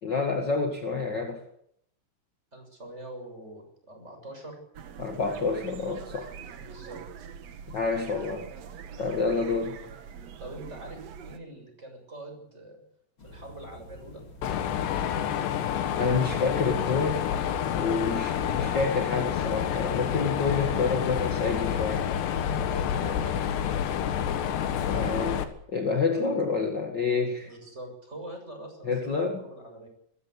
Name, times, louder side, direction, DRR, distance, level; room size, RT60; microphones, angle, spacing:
voice 1, 0.0-1.4 5.0-6.3 7.7-8.5 9.0-9.8 16.0-17.3 17.7-22.1 24.9-25.4 25.7-27.5 28.8-29.4, left 4 dB, 50° left, 3 dB, 1.4 m, -28 dB
voice 2, 2.5-4.6 6.6-7.3 10.4-12.8 13.2-14.2 22.7-24.3 26.1-26.5 27.4-29.9, right 1 dB, 15° right, 4 dB, 6.9 m, -44 dB
sound 1, 4.7-11.4, right 7 dB, 75° right, 1.5 m, -43 dB
sound 2, 13.2-20.7, equal, 30° left, 4.7 m, -48 dB
Mechanisms, 14.4-25.4, left 9 dB, 80° left, 3.6 m, -28 dB
22.0 x 15.5 x 8.1 m, 0.73 s
omnidirectional pair, 5.0 m